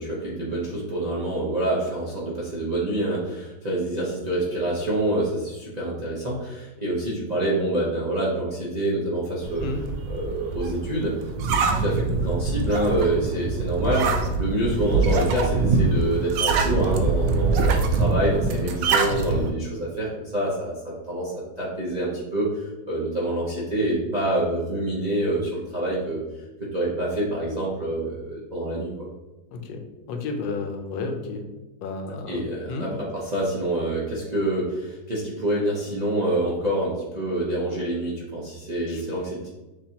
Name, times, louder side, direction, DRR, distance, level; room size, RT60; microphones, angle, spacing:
voice 1, 0.0-9.7 10.1-11.1 11.5-26.2 26.6-28.9 32.3-39.5, right 1 dB, 50° right, -7 dB, 0.5 m, -26 dB
sound 1, 9.4-19.5, right 4 dB, 80° right, 1.3 m, -24 dB
voice 2, 29.5-29.8 30.1-31.5 31.8-32.4 32.7-32.9 38.9-39.0, left 3 dB, 80° left, 4 dB, 1.3 m, -31 dB
6.7 x 2.6 x 2.8 m, 1.1 s
omnidirectional pair, 2.0 m